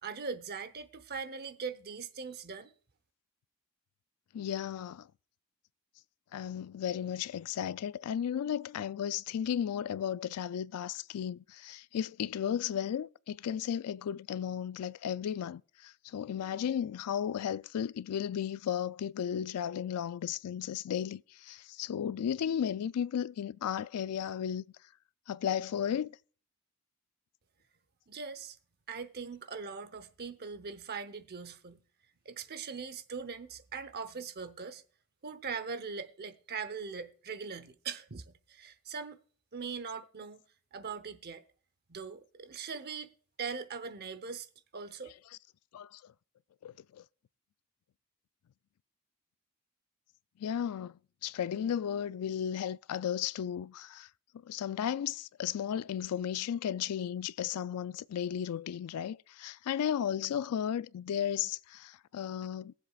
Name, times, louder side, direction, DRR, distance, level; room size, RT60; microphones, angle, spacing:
voice 1, 0.0-2.7 28.1-28.6 28.9-31.8 32.2-34.8 35.2-39.2 39.5-40.4 40.7-41.4 41.9-44.5 44.7-45.1, right 5 dB, 45° right, 0.8 m, -41 dB
voice 2, 4.3-5.1 6.3-24.6 25.3-26.1 45.7-46.0 46.6-47.0 50.4-50.9 51.2-54.1 54.4-62.7, left 9 dB, 85° left, 0.3 m, -34 dB
21.0 x 7.5 x 2.3 m
head